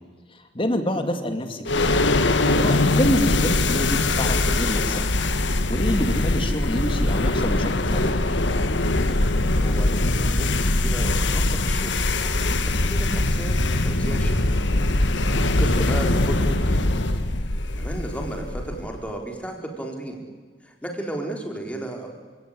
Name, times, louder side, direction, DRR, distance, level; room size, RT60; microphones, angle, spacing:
voice 1, 0.5-1.9 2.6-5.1 5.7-8.2, left 1 dB, 30° left, 7 dB, 2.6 m, -27 dB
sound 1, 1.7-19.0, left 2 dB, 75° left, 1.6 m, -22 dB
voice 2, 9.6-10.5 10.7-11.9 12.2-14.6 15.3-16.8 17.8-20.2 20.6-22.1, right 1 dB, 5° left, 2 dB, 4.1 m, -34 dB
29.0 x 17.5 x 9.9 m, 1.4 s
head